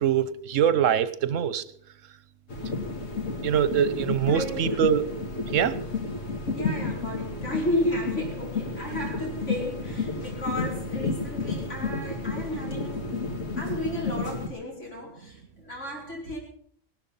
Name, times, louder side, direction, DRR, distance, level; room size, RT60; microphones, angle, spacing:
voice 1, 0.0-1.6 3.4-5.0 5.5-5.7, right 9 dB, 85° right, 15 dB, 1.2 m, -23 dB
sound 1, 2.5-14.5, left 3 dB, 90° left, 2.3 m, -31 dB
voice 2, 4.3-5.0 6.5-13.1 13.6-16.4, left 1 dB, 70° left, -2 dB, 5.4 m, -33 dB
18.0 x 12.5 x 5.5 m, 0.63 s
omnidirectional pair, 1.3 m